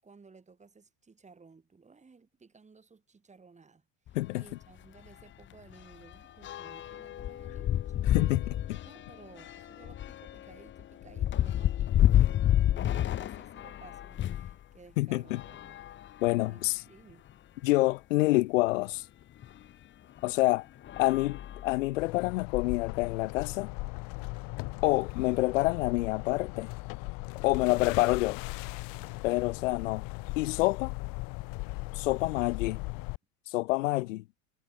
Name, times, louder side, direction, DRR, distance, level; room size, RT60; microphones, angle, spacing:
voice 1, 0.0-8.0 8.8-15.8 16.4-17.3 21.0-21.3 27.5-27.9 29.0-29.3 29.8-29.9 32.3-32.8, right 4 dB, 20° right, 5.8 m, -56 dB
sound 1, 4.1-4.3 4.6-4.7 5.1-14.5 15.3-16.6 17.3-17.4 17.6-17.7 19.4-19.6 20.2-20.4 20.8-22.1, left 12 dB, 30° left, 0.7 m, -30 dB
voice 2, 8.0-8.8 15.0-15.4 16.2-16.8 17.6-19.1 20.2-20.7 21.0-23.7 24.8-26.7 27.4-28.4 29.2-30.1 30.3-30.9 31.9-32.8 33.5-34.2, left 20 dB, 85° left, 1.1 m, -27 dB
sound 2, 22.0-33.2, left 27 dB, 65° left, 1.8 m, -38 dB
supercardioid pair, 95°, 37 cm